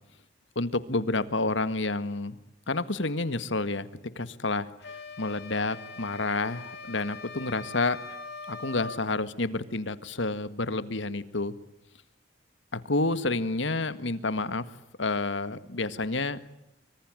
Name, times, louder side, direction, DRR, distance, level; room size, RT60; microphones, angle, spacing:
voice 1, 0.6-2.4 2.7-3.9 4.2-8.0 8.5-11.5 12.7-14.7 15.0-16.4, left 2 dB, 80° left, 13 dB, 1.8 m, -29 dB
sound 1, 4.8-9.1, left 4 dB, 60° left, 2.7 m, -42 dB
25.0 x 25.0 x 9.1 m, 0.86 s
head